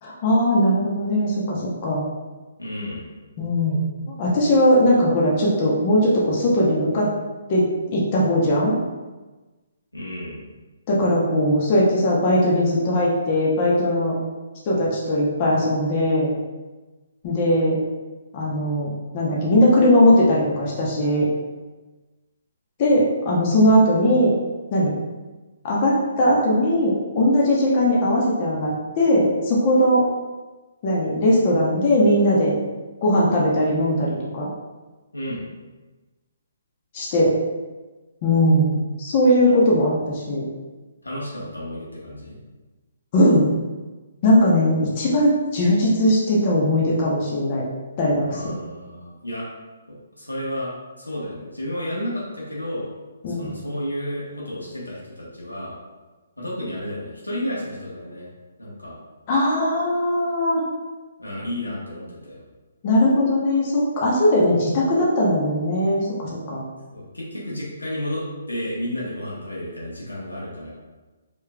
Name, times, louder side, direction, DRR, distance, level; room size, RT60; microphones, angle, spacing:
voice 1, 0.0-2.0 3.4-7.1 7.5-8.8 10.9-14.2 14.6-16.3 17.2-17.8 18.3-21.3 22.8-24.3 24.7-24.9 25.6-30.1 30.8-32.5 33.0-34.5 36.9-37.3 38.2-40.5 43.1-43.5 44.2-47.6 48.0-48.5 53.2-53.5 59.3-60.6 62.8-66.6, left 1 dB, 35° left, -4 dB, 0.8 m, -19 dB
voice 2, 2.6-3.1 9.9-10.4 35.1-35.4 41.0-42.4 48.3-49.5 49.9-50.7 51.0-52.9 53.3-55.8 56.4-58.3 58.6-59.0 61.2-62.4 66.9-70.7, left 1 dB, 90° left, -5 dB, 1.2 m, -32 dB
4.6 x 3.0 x 2.3 m, 1.2 s
figure-of-eight pair, 135°, 0 cm